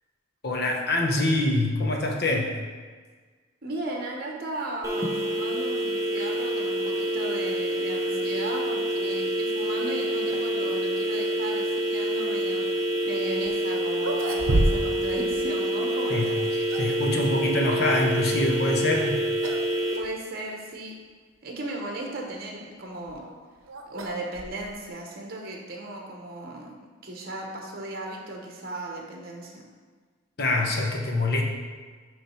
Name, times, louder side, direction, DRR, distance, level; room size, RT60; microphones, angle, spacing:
voice 1, 0.4-2.6 16.1-19.2 30.4-31.4, left 2 dB, 50° left, 1 dB, 0.8 m, -25 dB
voice 2, 3.6-12.7 13.0-16.4 20.0-21.0 21.4-23.3 23.9-26.7 27.0-29.6, right 2 dB, 45° right, 0 dB, 0.9 m, -36 dB
sound 1, 4.8-20.0, right 1 dB, 15° right, 0.8 m, -27 dB
sound 2, 13.5-13.6 14.0-15.1 15.3-15.4 16.3-17.0 18.8-19.1 19.4-19.7 20.0-20.1 20.9-21.0 22.8-24.9, right 1 dB, 80° right, 0.8 m, -29 dB
8.7 x 3.2 x 4.4 m, 1.5 s
head